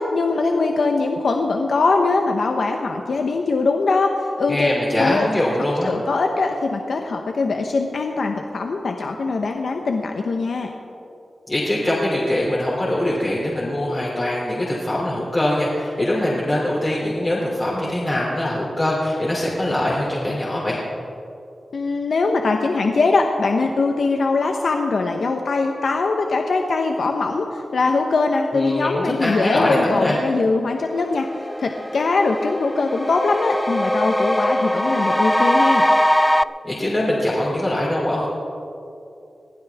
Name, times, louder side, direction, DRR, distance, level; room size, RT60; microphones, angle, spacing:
voice 1, 0.0-4.7 5.0-5.3 5.8-10.7 21.7-31.3 31.6-35.8, left 3 dB, 75° left, 3 dB, 0.9 m, -21 dB
voice 2, 4.5-5.9 11.5-20.8 28.5-30.2 36.6-38.3, left 1 dB, 25° left, -6 dB, 2.9 m, -22 dB
sound 1, 30.7-30.8 31.1-36.4, equal, 5° left, 0.3 m, -21 dB
22.0 x 15.5 x 3.5 m, 2.7 s
wide cardioid pair, 120°, 0 cm